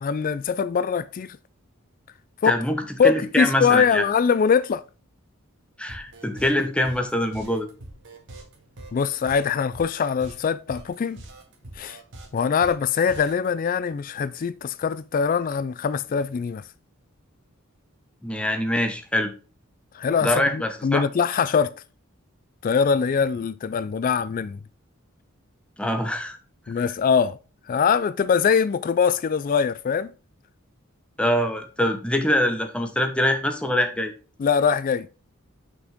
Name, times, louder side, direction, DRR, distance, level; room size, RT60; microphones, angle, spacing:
voice 1, 0.0-1.4 2.4-2.6 3.0-4.8 8.9-11.2 11.8-12.0 12.3-16.6 19.9-21.7 22.6-24.6 26.7-27.4 27.7-30.1 34.4-35.1, left 6 dB, 40° left, 0.3 m, -22 dB
voice 2, 2.4-4.0 5.8-7.7 18.2-19.3 20.2-21.0 25.8-26.4 31.2-34.1, left 1 dB, 5° left, 1.0 m, -24 dB
sound 1, 5.9-13.5, right 2 dB, 60° right, 1.8 m, -43 dB
6.2 x 6.0 x 3.5 m
head